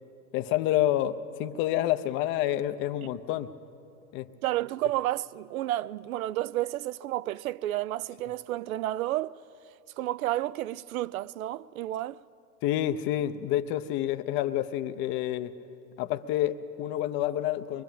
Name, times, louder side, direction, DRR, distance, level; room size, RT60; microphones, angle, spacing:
voice 1, 0.3-3.5 4.1-4.3 12.6-15.5 16.0-17.8, left 12 dB, 25° left, 0.6 m, -28 dB
voice 2, 4.4-9.4 10.0-12.2, right 14 dB, 60° right, 0.6 m, -31 dB
23.5 x 22.5 x 8.9 m
hypercardioid pair, 140°, 47 cm